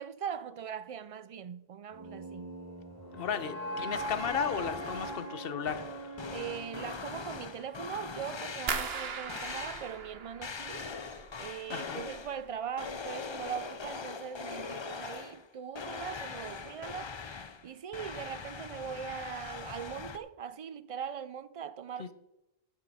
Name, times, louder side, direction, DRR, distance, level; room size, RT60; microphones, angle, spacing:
voice 1, 0.0-2.5 6.3-10.9 11.4-22.1, right 8 dB, 55° right, 0.4 m, -41 dB
sound 1, 1.9-8.0, right 1 dB, 20° right, 2.8 m, -41 dB
voice 2, 3.1-6.2 11.7-12.0 22.0-22.1, left 7 dB, 65° left, 1.0 m, -35 dB
sound 2, 3.9-5.4 5.7-9.0 9.3-10.1 10.4-12.4 12.8-15.5 15.8-20.2, left 5 dB, 35° left, 0.5 m, -42 dB
sound 3, 8.7-11.5 11.8-12.5 12.9-13.3 13.7-13.9, right 5 dB, 75° right, 1.2 m, -39 dB
11.0 x 10.5 x 4.1 m
omnidirectional pair, 1.1 m